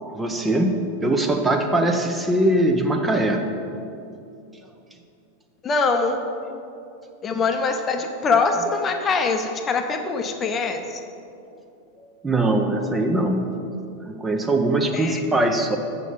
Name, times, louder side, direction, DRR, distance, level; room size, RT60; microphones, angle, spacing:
voice 1, 0.0-3.5 10.4-10.5 12.2-13.5 14.1-15.8, right 1 dB, 10° right, 4 dB, 0.6 m, -21 dB
voice 2, 5.6-6.2 7.2-10.8 14.9-15.2, left 4 dB, 25° left, 5 dB, 0.7 m, -23 dB
7.2 x 6.0 x 6.9 m, 2.6 s
figure-of-eight pair, 90°, 0 cm